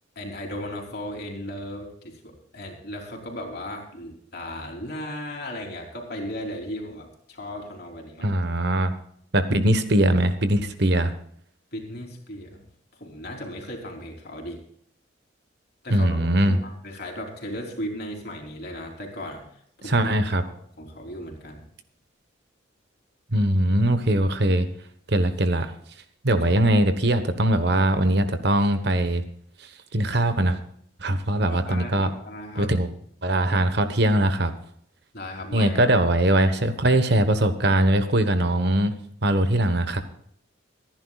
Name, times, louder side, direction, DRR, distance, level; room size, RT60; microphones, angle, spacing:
voice 1, 0.2-8.3 11.7-12.7 12.9-14.6 15.8-19.4 19.8-20.1 20.8-21.6 31.4-32.7 35.1-36.0, left 1 dB, 55° left, 1 dB, 3.5 m, -36 dB
voice 2, 8.2-8.9 9.3-11.1 15.9-16.6 19.9-20.4 23.3-24.7 25.1-25.7 26.2-29.2 29.9-30.6 31.0-32.1 32.6-32.9 33.2-34.5 35.5-38.9 39.2-40.0, right 1 dB, 55° right, 10 dB, 1.2 m, -21 dB
26.5 x 10.5 x 2.4 m, 0.64 s
head